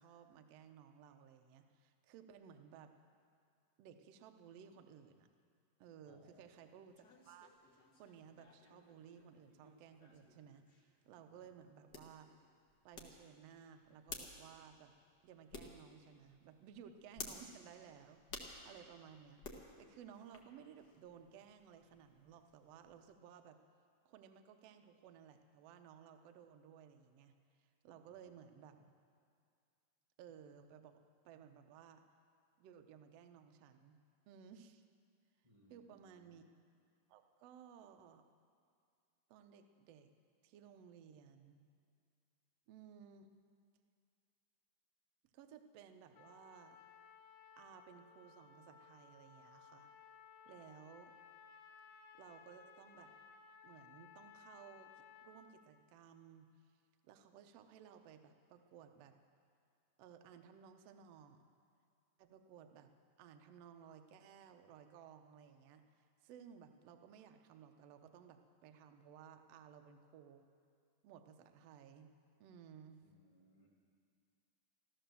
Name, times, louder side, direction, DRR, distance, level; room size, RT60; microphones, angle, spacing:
voice 1, 0.0-2.9 3.8-5.3 5.8-7.5 8.0-12.3 12.8-14.9 15.2-23.6 24.0-27.3 27.6-29.0 30.2-32.0 32.6-34.0 34.3-34.8 35.7-36.4 37.1-38.2 39.3-40.1 40.4-41.6 42.7-43.4 45.3-46.8 47.6-49.9 50.4-51.1 52.1-53.1 53.6-56.5 57.0-59.2 60.0-61.4 62.2-62.9 63.2-65.8 66.2-70.4 71.0-73.0, right 8 dB, 80° right, 6 dB, 1.4 m, -58 dB
voice 2, 6.1-6.6 11.3-11.5 28.1-28.4 35.4-36.3 50.6-50.7 73.0-73.7, right 1 dB, 25° right, -4 dB, 0.7 m, -68 dB
sound 1, 6.3-23.1, left 3 dB, 50° left, 1.2 m, -56 dB
Trumpet, 46.1-55.6, left 6 dB, 80° left, 1.4 m, -60 dB
14.5 x 14.0 x 6.9 m, 2.3 s
omnidirectional pair, 3.9 m